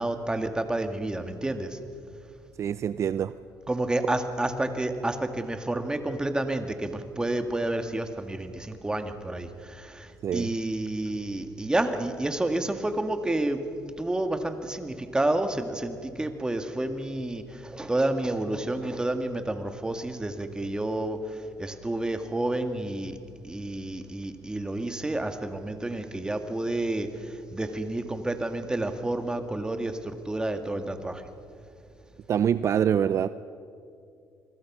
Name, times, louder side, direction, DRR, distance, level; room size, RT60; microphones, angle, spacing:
voice 1, 0.0-1.8 3.7-13.6 14.0-21.2 21.6-23.2 23.4-31.2, right 1 dB, 10° right, 7 dB, 1.9 m, -30 dB
voice 2, 2.6-3.3 10.2-10.6 32.3-33.3, right 9 dB, 50° right, 14 dB, 0.5 m, -25 dB
28.0 x 21.0 x 6.2 m, 2.5 s
cardioid pair, 105°, 6 cm